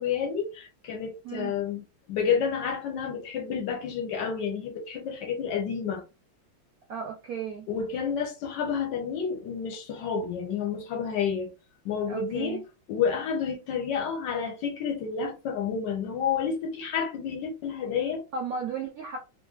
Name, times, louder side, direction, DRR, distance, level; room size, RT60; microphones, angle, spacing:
voice 1, 0.0-6.0 7.7-11.5 11.8-12.6 12.9-18.2, left 6 dB, 70° left, 1.2 m, -30 dB
voice 2, 6.9-7.7 12.1-12.6 18.3-19.2, right 6 dB, 75° right, 0.8 m, -34 dB
3.1 x 2.5 x 2.4 m
omnidirectional pair, 2.2 m